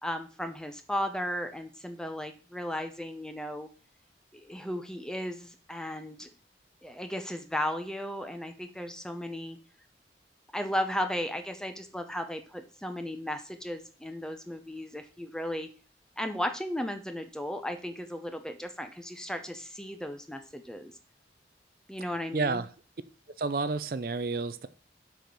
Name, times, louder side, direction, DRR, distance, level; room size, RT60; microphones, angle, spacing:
voice 1, 0.0-3.7 4.3-6.3 6.8-9.6 10.5-15.7 16.2-20.9 21.9-22.6, equal, 5° left, 7 dB, 0.7 m, -35 dB
voice 2, 22.0-22.7 23.4-24.7, right 3 dB, 55° right, 13 dB, 0.5 m, -31 dB
6.4 x 5.0 x 6.8 m, 0.37 s
head